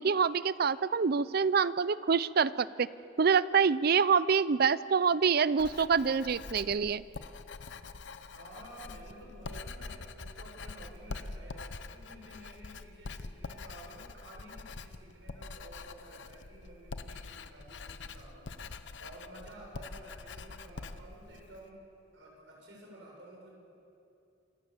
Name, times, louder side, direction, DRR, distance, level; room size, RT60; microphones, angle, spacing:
voice 1, 0.0-2.9 3.2-7.0, right 6 dB, 60° right, 18 dB, 0.5 m, -26 dB
Writing, 5.6-21.7, left 3 dB, 80° left, 0.8 m, -45 dB
voice 2, 8.3-18.5 19.0-21.8 22.1-23.6, right 1 dB, 90° right, -2 dB, 7.4 m, -52 dB
27.5 x 15.5 x 7.3 m, 2.7 s
head